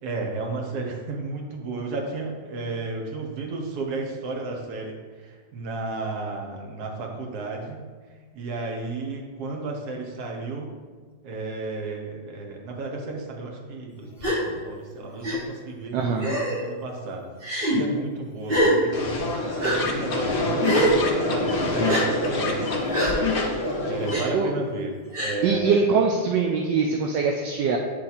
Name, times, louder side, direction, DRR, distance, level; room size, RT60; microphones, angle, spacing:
voice 1, 0.0-7.8 8.3-10.7 11.2-16.0 16.6-17.3 17.7-19.3 19.6-22.7 23.9-25.9, right 3 dB, 60° right, 1 dB, 1.4 m, -33 dB
Gasp, 14.2-14.4 15.2-15.4 16.2-16.6 17.4-17.8 18.5-18.8 19.6-19.8 20.6-21.0 21.9-22.0 22.9-23.1 24.1-24.2 25.1-25.4, right 1 dB, 35° right, 1.3 m, -23 dB
voice 2, 15.9-16.3 24.1-24.5 25.4-27.8, right 5 dB, 75° right, 1 dB, 1.2 m, -23 dB
sound 1, 18.9-24.1, left 2 dB, 75° left, 0.5 m, -26 dB
8.4 x 3.2 x 4.1 m, 1.5 s
omnidirectional pair, 2.1 m